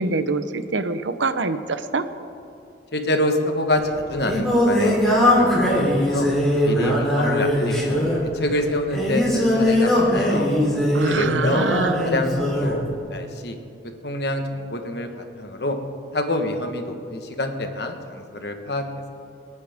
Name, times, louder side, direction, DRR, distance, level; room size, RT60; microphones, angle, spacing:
voice 1, 0.0-2.0 10.9-12.1, right 3 dB, 85° right, 10 dB, 0.8 m, -25 dB
voice 2, 2.9-5.8 6.1-6.3 6.6-10.5 11.1-11.6 12.0-13.6 14.0-15.8 16.1-18.8, left 1 dB, 60° left, 5 dB, 1.4 m, -27 dB
Singing, 3.8-12.8, left 1 dB, ahead, 3.7 m, -20 dB
28.0 x 9.7 x 3.6 m, 2.6 s
head